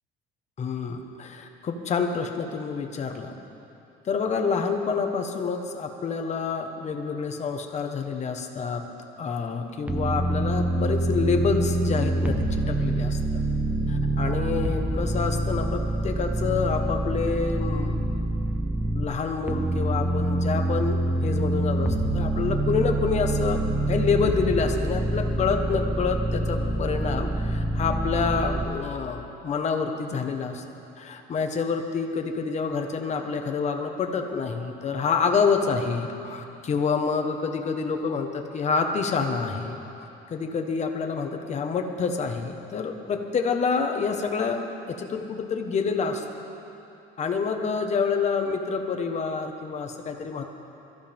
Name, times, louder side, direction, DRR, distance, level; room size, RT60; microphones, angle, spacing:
voice 1, 0.6-3.3 4.1-8.9 9.2-13.2 13.9-17.9 18.9-30.6 31.0-39.8 40.3-44.6 44.9-46.2 47.2-50.4, left 5 dB, 35° left, 4 dB, 1.3 m, -27 dB
sound 1, 9.9-19.1 19.5-28.7, right 1 dB, 10° right, 0.9 m, -26 dB
23.0 x 14.5 x 3.6 m, 2.9 s
cardioid pair, 130°, 19 cm